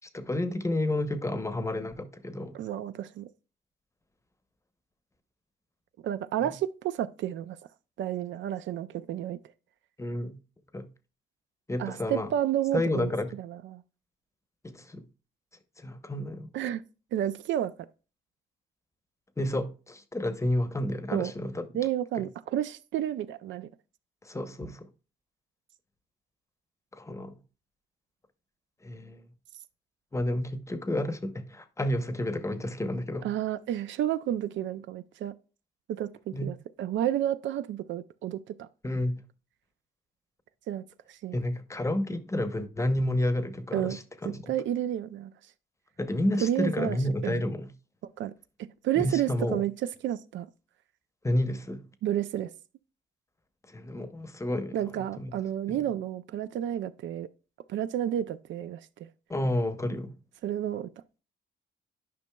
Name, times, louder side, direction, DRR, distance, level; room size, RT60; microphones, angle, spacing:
voice 1, 0.1-2.6 6.4-6.5 10.0-10.4 10.7-10.9 11.7-12.3 12.7-13.3 14.6-15.0 15.8-16.5 19.4-21.7 22.2-22.3 24.2-24.9 26.9-27.4 28.8-29.2 30.1-33.3 36.3-36.5 38.8-39.2 41.3-44.5 46.0-47.7 49.0-49.6 51.2-51.8 53.7-55.3 55.7-55.8 59.3-60.1, left 1 dB, 15° left, 0.8 m, -30 dB
voice 2, 2.5-3.3 6.0-7.6 8.0-9.4 11.8-13.1 13.4-13.8 16.5-16.8 17.1-17.7 21.1-21.3 21.7-23.7 33.2-35.3 35.9-38.7 40.7-40.8 41.1-41.4 43.7-44.0 44.5-45.3 46.4-47.0 47.2-47.4 48.2-48.3 48.8-49.7 50.0-50.5 52.0-52.5 54.7-57.3 57.7-59.1 60.4-60.9, right 11 dB, 70° right, 0.4 m, -31 dB
10.5 x 5.3 x 2.3 m
cardioid pair, 90°, 20 cm